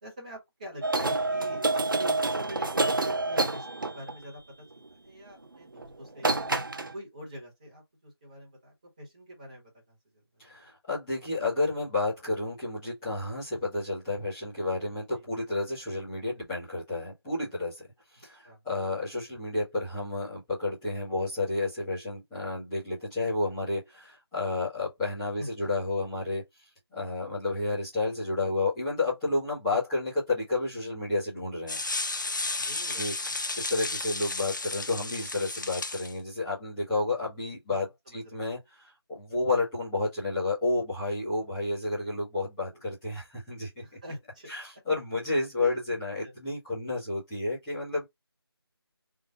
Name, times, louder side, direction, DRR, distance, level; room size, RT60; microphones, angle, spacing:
voice 1, 0.0-6.5 6.9-10.6 14.9-15.2 18.4-18.6 19.0-19.1 25.4-25.7 32.6-33.4 37.7-37.8 38.1-38.5 42.7-42.8 43.8-44.5 45.6-45.8 46.2-46.3, right 1 dB, 15° right, 1.6 m, -45 dB
sound 1, 0.8-4.2 5.8-5.9 6.2-6.9, right 2 dB, 50° right, 0.7 m, -28 dB
voice 2, 10.4-17.9 18.2-26.4 26.9-31.8 33.0-33.1 33.6-43.8 44.5-48.0, left 2 dB, 5° left, 1.2 m, -31 dB
sound 2, 31.7-36.1, left 3 dB, 50° left, 0.5 m, -33 dB
3.8 x 2.7 x 3.9 m
figure-of-eight pair, 175°, 14 cm